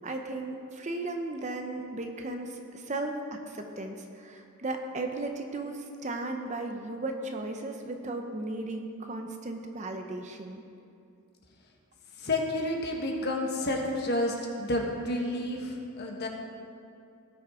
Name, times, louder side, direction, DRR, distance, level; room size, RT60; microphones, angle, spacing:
voice 1, 0.0-10.6, right 2 dB, 35° right, 4 dB, 0.7 m, -36 dB
voice 2, 12.2-16.3, left 1 dB, 50° left, 0 dB, 1.4 m, -30 dB
18.0 x 6.2 x 3.7 m, 2.5 s
head